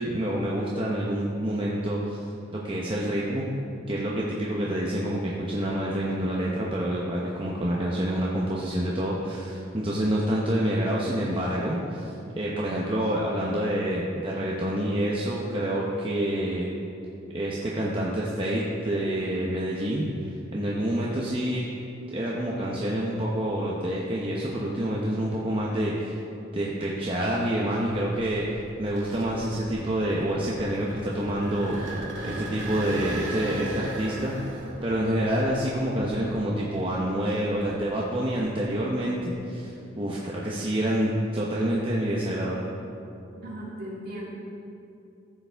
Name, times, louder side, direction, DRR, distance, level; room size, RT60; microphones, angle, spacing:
voice 1, 0.0-2.2 2.5-3.5 3.9-16.7 17.3-21.6 22.1-26.2 26.5-28.4 28.8-31.8 32.2-34.5 34.8-42.6, right 1 dB, 25° right, -4 dB, 0.8 m, -27 dB
sound 1, 28.0-36.9 37.4-39.2, right 1 dB, 75° right, 1.7 m, -37 dB
voice 2, 43.3-44.3, equal, 50° right, -6 dB, 2.4 m, -37 dB
14.0 x 6.9 x 3.4 m, 2.8 s
head